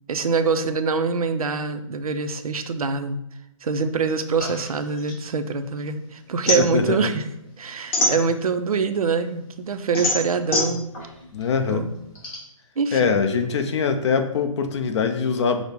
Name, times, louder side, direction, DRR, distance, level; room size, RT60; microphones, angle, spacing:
voice 1, 0.1-3.2 3.6-7.2 7.6-10.9 11.7-11.9 12.8-13.1, right 5 dB, 90° right, 9 dB, 0.5 m, -24 dB
sound 1, 4.4-5.9 6.2-8.7 9.2-12.4, left 1 dB, 25° left, 1.2 m, -26 dB
voice 2, 6.5-7.1 8.0-8.1 11.3-11.9 12.9-15.6, left 5 dB, 55° left, 8 dB, 0.6 m, -23 dB
6.1 x 2.0 x 3.4 m, 0.81 s
hypercardioid pair, 145°, 18 cm